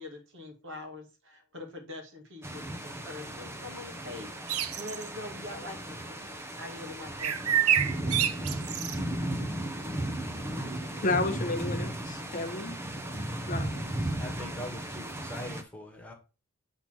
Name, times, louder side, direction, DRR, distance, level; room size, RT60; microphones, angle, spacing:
voice 1, 0.0-4.3 4.8-6.0 6.6-7.8, left 2 dB, 55° right, 2.4 m, -43 dB
sound 1, 2.4-15.6, right 1 dB, 10° right, 0.8 m, -35 dB
sound 2, 4.5-5.1 7.2-9.0, right 9 dB, 75° right, 0.8 m, -27 dB
voice 2, 9.9-12.9 13.5-13.8, left 2 dB, 35° left, 0.9 m, -33 dB
voice 3, 14.2-16.1, left 1 dB, 5° left, 1.8 m, -42 dB
7.8 x 4.2 x 6.1 m
head